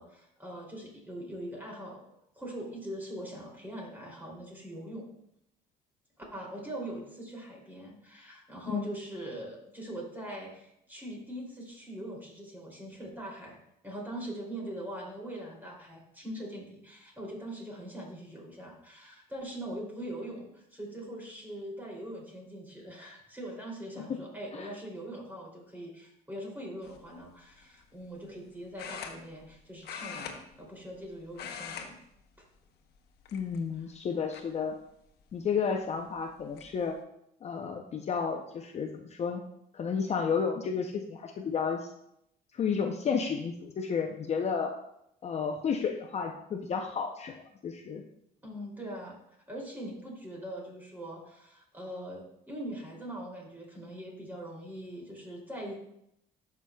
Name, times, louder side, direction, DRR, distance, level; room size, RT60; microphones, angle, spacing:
voice 1, 0.0-2.0 2.4-5.1 6.3-13.6 13.8-32.0 32.4-32.5 48.4-49.2 49.5-55.7, right 1 dB, 10° right, -1 dB, 2.7 m, -42 dB
sound 1, 26.8-27.1 28.8-29.6 29.8-31.0 31.3-31.9 32.2-32.4 33.2-33.8 34.3-34.4 35.9-36.0 36.3-36.7, left 7 dB, 70° left, 0.9 m, -41 dB
voice 2, 33.3-34.8 35.3-37.0 37.4-39.4 39.7-41.9 42.5-44.7 45.2-48.0, left 6 dB, 40° left, 4 dB, 0.6 m, -32 dB
12.0 x 5.9 x 2.3 m, 0.77 s
cardioid pair, 110°, 17 cm